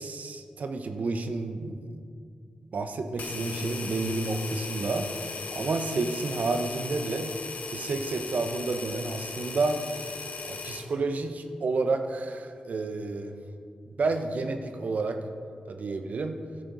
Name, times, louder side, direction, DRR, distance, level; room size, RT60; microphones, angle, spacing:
voice 1, 0.0-2.0 2.7-7.3 7.7-9.8 10.5-13.4 13.9-15.2 15.7-16.4, right 3 dB, 65° right, 7 dB, 0.8 m, -30 dB
sound 1, 3.2-10.9, left 4 dB, 80° left, 1.0 m, -37 dB
13.0 x 10.0 x 3.9 m, 2.3 s
cardioid pair, 60°, 3 cm